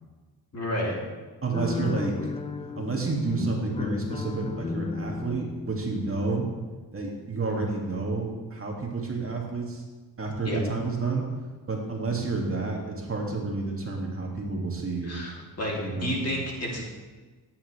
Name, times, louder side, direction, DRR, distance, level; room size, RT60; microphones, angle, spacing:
voice 1, 0.5-0.9 10.4-10.6 15.0-16.8, left 1 dB, 40° left, -3 dB, 3.1 m, -30 dB
voice 2, 1.4-2.1 2.7-6.4 6.9-9.8 10.2-11.2 11.7-15.2 15.7-16.2, right 3 dB, 35° right, -1 dB, 2.3 m, -30 dB
sound 1, 1.5-6.9, left 4 dB, 15° left, 0.4 m, -34 dB
14.0 x 9.5 x 3.4 m, 1.3 s
cardioid pair, 100°, 38 cm